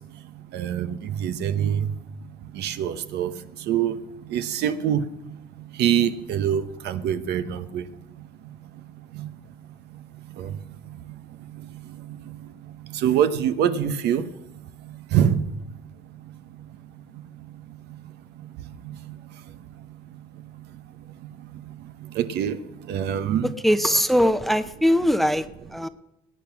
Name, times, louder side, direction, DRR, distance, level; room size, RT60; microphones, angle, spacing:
voice 1, 0.5-1.9 2.5-3.3 3.7-4.0 4.3-5.0 5.8-7.8 9.1-9.3 10.4-10.6 12.9-14.2 15.1-15.4 18.8-19.1 22.1-22.6 22.9-23.5, right 9 dB, 75° right, 10 dB, 1.0 m, -24 dB
voice 2, 23.6-25.5 25.7-25.9, equal, ahead, 12 dB, 0.7 m, -20 dB
20.5 x 9.2 x 5.9 m, 0.87 s
cardioid pair, 110°, 17 cm